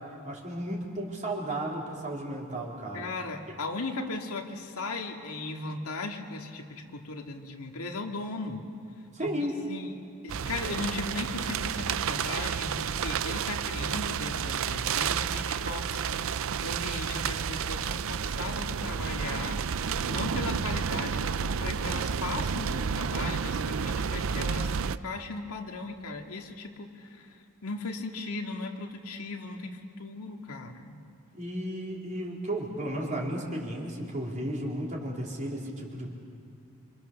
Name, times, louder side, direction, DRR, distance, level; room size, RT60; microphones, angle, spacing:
voice 1, 0.2-3.1 9.1-9.6 31.3-36.1, right 1 dB, 35° right, -2 dB, 4.1 m, -34 dB
voice 2, 2.9-8.7 9.2-31.0, left 3 dB, 85° left, 2 dB, 2.2 m, -37 dB
sound 1, 10.3-25.0, right 6 dB, 65° right, 0.5 m, -31 dB
27.0 x 27.0 x 6.9 m, 2.4 s
head